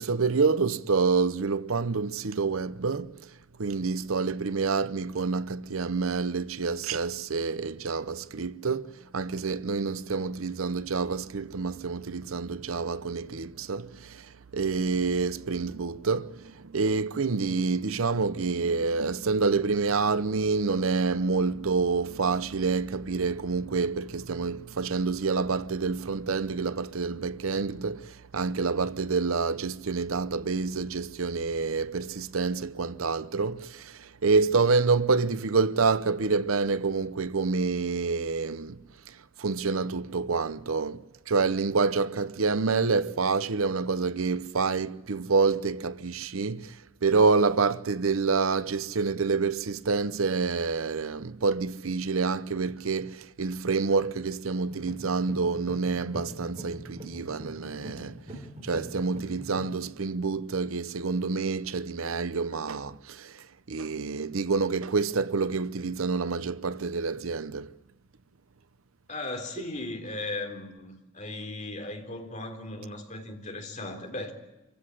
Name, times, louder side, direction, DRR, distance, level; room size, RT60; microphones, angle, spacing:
voice 1, 0.0-3.3 3.6-46.8 47.0-58.2 58.6-67.7, right 4 dB, 85° right, 0.8 m, -27 dB
sound 1, 54.7-59.8, right 1 dB, 35° right, 4.6 m, -42 dB
voice 2, 69.1-74.3, left 2 dB, 35° left, 3.8 m, -37 dB
26.5 x 15.5 x 9.9 m
head